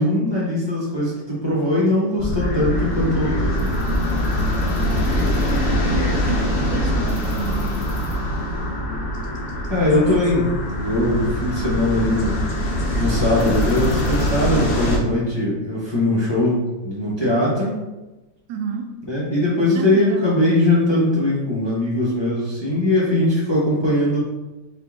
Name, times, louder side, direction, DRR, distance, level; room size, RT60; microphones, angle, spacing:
voice 1, 0.0-3.7 9.7-12.4 13.0-17.8 19.1-24.2, left 1 dB, 25° left, -7 dB, 0.6 m, -20 dB
sound 1, 2.2-15.0, equal, 50° left, 0.8 m, -23 dB
voice 2, 4.6-5.4 5.8-7.9 18.5-19.0 19.7-20.3, right 6 dB, 85° right, 5 dB, 1.2 m, -31 dB
4.5 x 2.5 x 3.6 m, 1.1 s
omnidirectional pair, 1.9 m